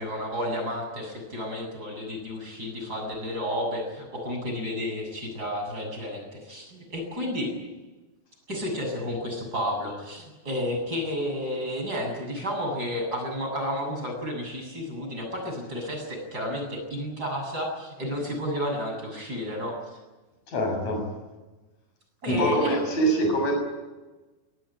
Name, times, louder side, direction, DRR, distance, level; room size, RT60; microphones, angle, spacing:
voice 1, 0.0-7.5 8.5-20.0 22.2-22.9, left 1 dB, 20° right, 1 dB, 7.8 m, -31 dB
voice 2, 20.5-21.0 22.3-23.5, right 1 dB, 40° left, 2 dB, 8.2 m, -24 dB
24.5 x 18.0 x 10.0 m, 1.2 s
omnidirectional pair, 4.7 m